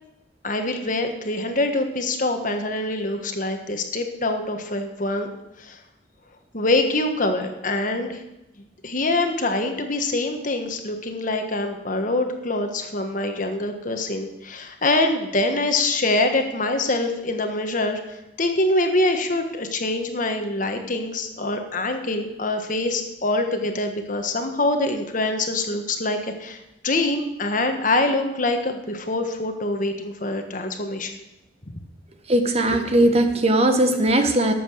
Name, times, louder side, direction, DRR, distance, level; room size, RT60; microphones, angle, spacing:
voice 1, 0.4-5.3 5.6-5.8 6.5-8.2 8.8-26.6 26.8-31.1, left 2 dB, 45° left, 5 dB, 1.4 m, -24 dB
voice 2, 32.3-34.5, right 1 dB, 35° right, 6 dB, 1.1 m, -19 dB
12.5 x 7.7 x 6.4 m, 0.91 s
head